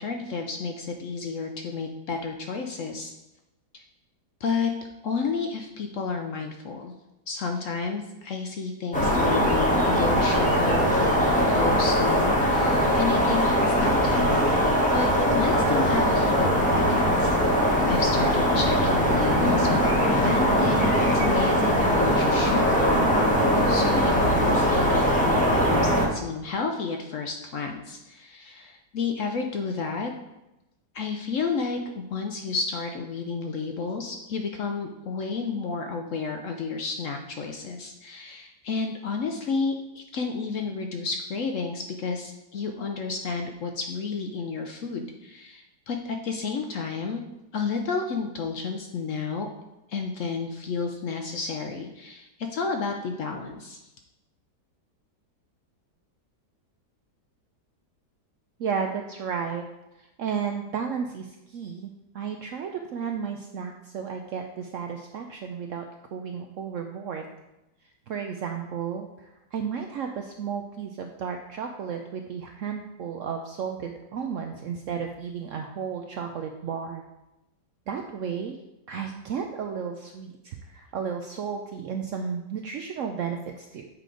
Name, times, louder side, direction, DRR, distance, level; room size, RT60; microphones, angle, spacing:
voice 1, 0.0-3.1 3.7-3.8 4.4-4.7 5.0-6.9 7.3-17.4 17.9-23.4 23.7-30.1 30.9-47.2 47.5-49.5 49.9-53.8, left 4 dB, 65° left, 4 dB, 0.8 m, -31 dB
sound 1, 8.9-26.1, equal, 5° left, 0.9 m, -21 dB
sound 2, 17.7-23.3, left 1 dB, 25° right, 0.6 m, -39 dB
voice 2, 58.6-59.6 60.0-67.3 68.1-77.0 77.9-78.6 78.9-83.9, right 6 dB, 75° right, 4 dB, 0.7 m, -33 dB
7.5 x 4.9 x 3.8 m, 0.94 s
omnidirectional pair, 1.8 m